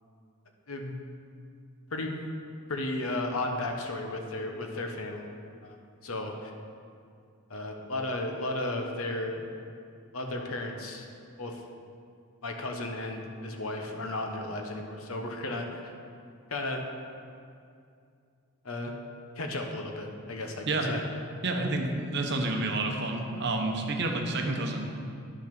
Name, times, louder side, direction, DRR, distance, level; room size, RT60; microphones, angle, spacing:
voice 1, 2.7-5.3 5.6-5.8 6.0-6.5 7.5-9.4 10.1-11.1 11.4-11.6 12.4-15.9 16.5-16.8 18.6-18.9 19.4-21.0, left 2 dB, 75° left, 3 dB, 1.1 m, -34 dB
voice 2, 21.4-24.9, right 2 dB, 50° right, 2 dB, 1.0 m, -29 dB
11.0 x 6.1 x 6.0 m, 2.4 s
head